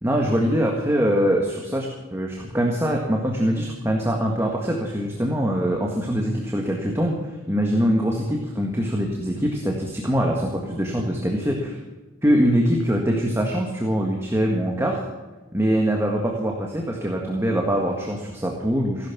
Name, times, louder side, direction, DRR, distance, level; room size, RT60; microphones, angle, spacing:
voice 1, 0.0-7.2 7.5-11.8 12.2-15.1 15.5-19.1, equal, 10° right, 0 dB, 1.7 m, -23 dB
16.0 x 11.5 x 6.0 m, 1.2 s
head